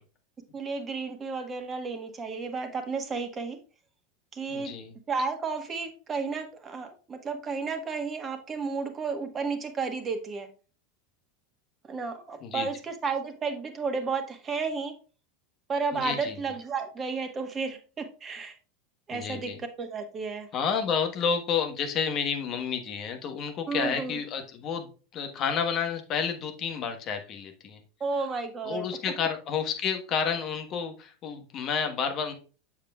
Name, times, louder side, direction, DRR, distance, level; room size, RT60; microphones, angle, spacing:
voice 1, 0.5-3.6 4.3-4.7 5.1-10.5 11.8-14.9 15.7-18.6 19.1-20.5 23.7-24.2 28.0-28.9 29.2-29.3, right 4 dB, 25° right, 6 dB, 1.4 m, -32 dB
voice 2, 4.5-4.9 12.4-12.7 15.9-16.3 19.1-19.6 20.5-27.8 28.6-32.3, left 6 dB, 40° left, 5 dB, 1.3 m, -30 dB
7.3 x 7.2 x 2.4 m, 0.36 s
figure-of-eight pair, 80°, 0 cm